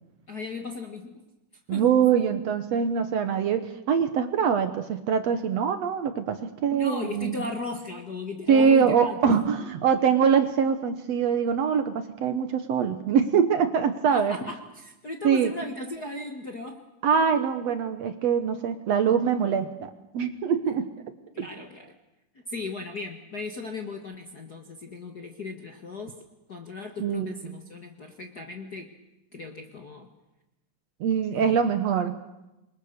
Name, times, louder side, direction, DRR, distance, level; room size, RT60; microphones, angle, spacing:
voice 1, 0.3-1.2 1.7-1.9 6.7-9.4 14.1-16.9 21.3-21.9 22.3-26.1 26.5-28.9 29.3-30.1 31.3-31.6, left 3 dB, 45° left, 4 dB, 1.3 m, -37 dB
voice 2, 1.7-7.4 8.5-14.4 15.2-15.5 17.0-20.9 21.4-21.5 27.0-27.6 31.0-32.2, right 7 dB, 65° right, 9 dB, 1.9 m, -23 dB
27.5 x 22.5 x 6.7 m, 0.97 s
omnidirectional pair, 3.8 m